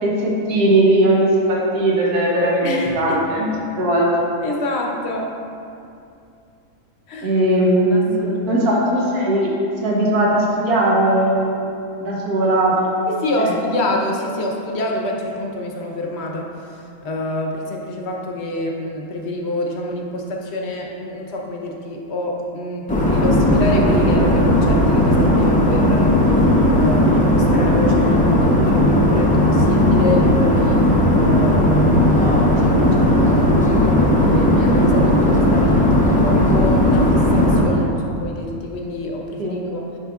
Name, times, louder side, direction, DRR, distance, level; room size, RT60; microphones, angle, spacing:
voice 1, 0.0-2.7 2.9-3.5 3.8-4.1 7.2-9.5 9.8-11.5 12.0-12.9 13.4-13.5 39.4-39.6, right 1 dB, 85° right, -4 dB, 1.5 m, -18 dB
voice 2, 2.6-3.2 4.4-5.3 7.1-7.4 7.8-8.6 13.1-16.7 17.0-26.2 26.7-30.8 31.2-39.8, left 1 dB, 55° left, 0 dB, 0.9 m, -27 dB
sound 1, 22.9-37.6, left 1 dB, 10° left, 0.3 m, -16 dB
9.0 x 5.3 x 2.4 m, 2.6 s
omnidirectional pair, 1.5 m